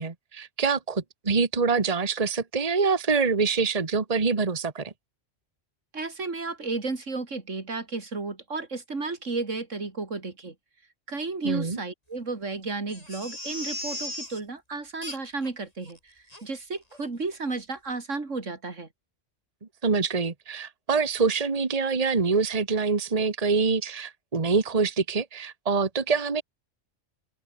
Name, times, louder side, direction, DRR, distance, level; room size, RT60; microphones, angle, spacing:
voice 1, 0.0-4.9 11.4-11.8 19.8-26.4, right 4 dB, 30° right, 1.5 m, -25 dB
voice 2, 5.9-10.5 11.1-16.1 16.4-18.9, right 3 dB, 85° right, 3.4 m, -33 dB
Crying sobbing, 12.9-14.4 15.0-15.5 15.9-16.0 16.3-16.4 16.9-17.1 17.3-17.4, left 1 dB, 30° left, 6.0 m, -37 dB
open air
omnidirectional pair, 1.3 m